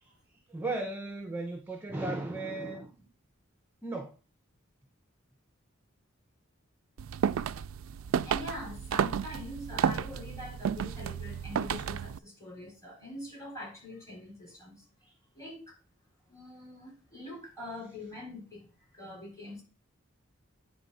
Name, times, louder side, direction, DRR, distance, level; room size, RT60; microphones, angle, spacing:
voice 1, 0.0-3.1 3.8-4.1, right 2 dB, 10° right, 3 dB, 0.7 m, -36 dB
sound 1, 7.0-12.2, right 8 dB, 90° right, 0.3 m, -32 dB
voice 2, 8.2-14.8 15.3-15.8 16.3-19.6, left 1 dB, 15° left, -3 dB, 3.5 m, -44 dB
9.6 x 3.5 x 5.4 m, 0.33 s
head